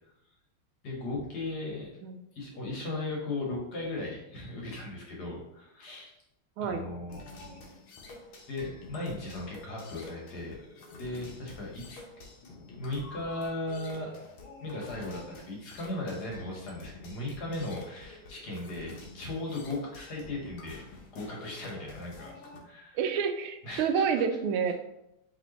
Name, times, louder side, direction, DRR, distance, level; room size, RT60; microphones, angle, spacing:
voice 1, 0.8-6.1 6.6-7.2 8.5-10.5 11.0-12.0 12.8-14.1 14.6-20.8 21.1-22.3 22.6-23.0 23.6-24.2, left 2 dB, 55° left, -2 dB, 1.6 m, -37 dB
sound 1, 7.1-22.6, left 2 dB, 80° left, 1.8 m, -48 dB
voice 2, 22.9-24.7, right 6 dB, 80° right, 6 dB, 1.4 m, -28 dB
4.9 x 3.4 x 3.1 m, 0.85 s
omnidirectional pair, 2.3 m